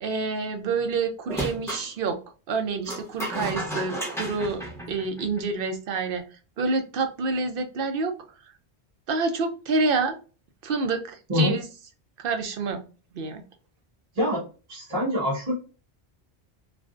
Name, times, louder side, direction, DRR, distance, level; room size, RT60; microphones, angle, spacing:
voice 1, 0.0-2.2 2.5-4.6 4.9-6.2 6.6-8.1 9.1-10.2 10.6-11.6 12.2-12.8 13.1-13.4, right 4 dB, 60° right, 6 dB, 0.7 m, -27 dB
sound 1, 1.3-1.9 2.9-5.6, right 1 dB, 5° left, 0.7 m, -33 dB
voice 2, 14.7-15.5, left 1 dB, 35° right, -7 dB, 1.1 m, -25 dB
3.3 x 2.5 x 2.4 m, 0.35 s
omnidirectional pair, 1.1 m